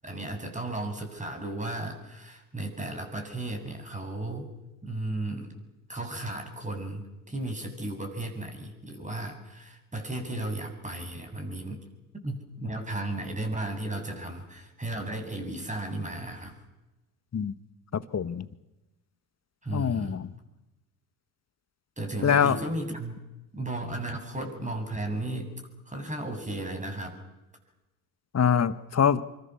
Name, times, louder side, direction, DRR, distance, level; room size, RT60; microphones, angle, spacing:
voice 1, 0.0-4.5 4.8-5.6 5.9-11.8 12.2-16.6 19.6-20.2 22.0-23.2 23.5-25.5 25.8-27.2, right 2 dB, 15° right, 5 dB, 7.9 m, -35 dB
voice 2, 17.9-18.5 19.7-20.3 22.2-22.6 28.3-29.2, left 7 dB, 35° left, 14 dB, 1.7 m, -24 dB
26.5 x 24.5 x 7.2 m, 1.0 s
hypercardioid pair, 60°, 46 cm